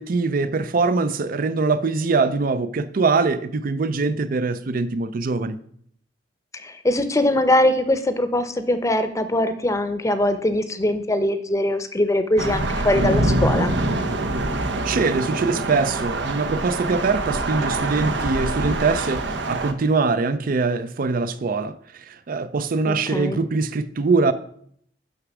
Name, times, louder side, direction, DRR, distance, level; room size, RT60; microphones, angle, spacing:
voice 1, 0.0-5.6 14.8-24.3, right 4 dB, 50° right, 0.5 m, -23 dB
voice 2, 6.5-13.7 22.8-23.4, left 1 dB, 20° left, 0.7 m, -22 dB
Thunder / Rain, 12.4-19.7, right 2 dB, 80° right, 0.9 m, -24 dB
6.6 x 5.9 x 6.0 m
head